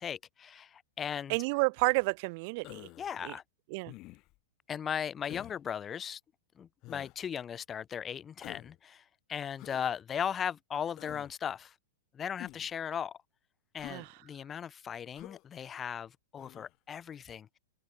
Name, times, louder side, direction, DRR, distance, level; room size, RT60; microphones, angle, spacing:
voice 1, 0.0-1.4 3.0-3.4 4.7-6.2 6.6-9.0 9.3-11.7 12.1-13.2 13.7-17.6, left 8 dB, 20° left, 1.1 m, -37 dB
voice 2, 1.3-2.9 3.2-3.3 3.7-3.9 13.9-14.1, right 30 dB, 45° right, 1.8 m, -30 dB
Human voice, 2.6-3.1 3.9-4.4 5.3-5.6 6.8-7.2 8.4-8.8 9.6-9.9 11.0-11.3 12.4-12.7 13.8-14.0 15.1-15.4 16.4-16.7, left 20 dB, 35° left, 2.8 m, -48 dB
hypercardioid pair, 140°, 0 cm